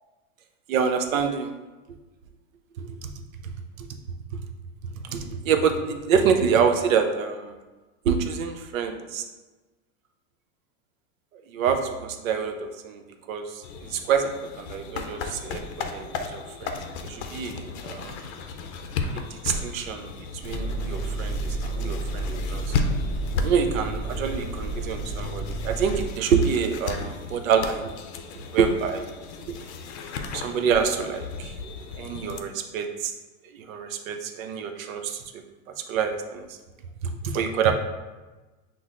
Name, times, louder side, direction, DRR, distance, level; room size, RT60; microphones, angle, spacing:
voice 1, 0.7-1.5 2.8-2.9 3.4-3.9 4.3-4.4 5.1-7.6 8.0-9.2 11.5-13.0 13.3-14.3 14.6-18.2 19.1-20.1 20.4-22.6 23.4-27.9 28.5-29.1 30.3-33.1 33.5-35.2 35.9-36.6 37.0-37.7, right 6 dB, 90° right, 6 dB, 0.7 m, -26 dB
sound 1, 13.6-32.4, left 4 dB, 55° left, 0.6 m, -35 dB
sound 2, 20.4-26.1, right 2 dB, 30° right, 1.2 m, -31 dB
6.1 x 2.0 x 3.7 m, 1.2 s
supercardioid pair, 155°, 39 cm